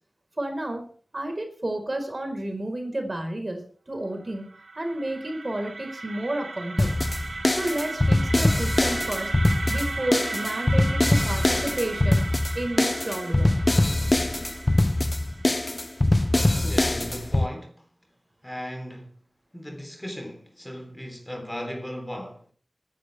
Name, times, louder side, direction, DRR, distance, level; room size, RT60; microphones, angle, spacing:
voice 1, 0.4-0.9 1.1-4.5 4.8-7.1 7.6-9.3 9.7-12.3 12.5-13.6, right 1 dB, 45° right, 4.7 m, -31 dB
sound 1, 4.3-16.2, right 3 dB, 80° right, 0.9 m, -36 dB
sound 2, 6.8-17.5, left 1 dB, 35° left, 0.6 m, -23 dB
voice 2, 16.6-17.8 18.4-19.1 19.5-22.4, equal, 10° left, 3.6 m, -36 dB
25.0 x 10.5 x 3.5 m
wide cardioid pair, 45°, 0 cm